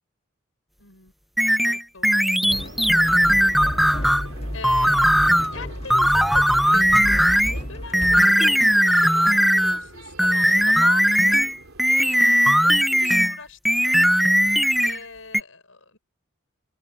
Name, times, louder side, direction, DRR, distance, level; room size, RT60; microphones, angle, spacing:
voice 1, 0.8-1.1 1.6-2.2 2.5-3.6 4.5-11.4 11.9-14.3 14.8-16.0, left 4 dB, 85° left, 5.9 m, -41 dB
sound 1, 1.4-4.3 4.6-5.5 5.9-7.6 7.9-9.8 10.2-13.4 13.6-15.0 15.3-15.4, equal, ahead, 0.9 m, -18 dB
sound 2, 2.4-8.3, equal, 30° left, 2.1 m, -33 dB
sound 3, 2.4-11.8, right 2 dB, 90° right, 3.7 m, -44 dB
open air
head